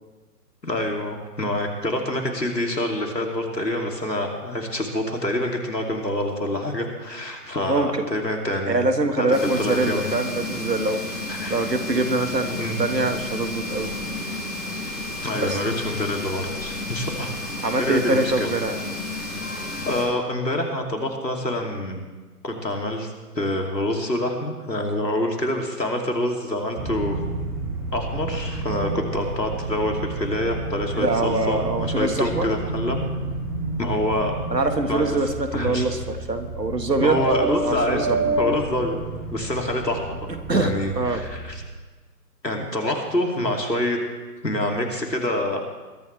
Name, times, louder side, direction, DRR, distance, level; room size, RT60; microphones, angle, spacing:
voice 1, 0.6-8.9 9.2-9.3 9.6-10.0 11.3-11.6 12.6-12.8 15.2-17.4 17.8-18.5 19.9-22.0 22.4-27.2 27.9-33.0 33.8-34.3 34.9-35.2 35.5-35.9 37.0-39.0 39.3-40.3 40.5-41.6 42.4-44.0 44.4-45.6, left 1 dB, 90° left, 1 dB, 3.0 m, -26 dB
voice 2, 7.7-8.1 8.7-11.2 11.5-13.9 15.4-15.6 17.6-18.8 31.0-32.5 34.5-37.2 37.6-38.3 40.3-41.2, right 2 dB, 80° right, 7 dB, 1.8 m, -24 dB
sound 1, 9.3-20.0, left 2 dB, 65° left, 5.5 m, -32 dB
sound 2, 26.8-41.5, right 2 dB, 10° right, 1.4 m, -30 dB
22.0 x 13.0 x 3.4 m, 1.3 s
figure-of-eight pair, 140°, 49 cm